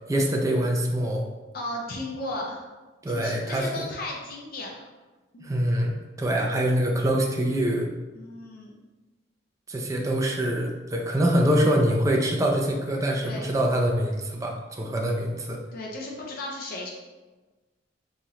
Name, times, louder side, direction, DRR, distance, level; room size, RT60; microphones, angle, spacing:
voice 1, 0.1-1.2 3.0-3.6 5.4-7.9 9.7-15.6, right 1 dB, 20° right, 0 dB, 0.4 m, -24 dB
voice 2, 1.5-2.6 3.1-4.8 5.3-5.5 8.1-8.8 13.2-13.5 15.7-16.9, left 1 dB, 55° left, -1 dB, 0.5 m, -35 dB
3.2 x 2.9 x 3.6 m, 1.2 s
head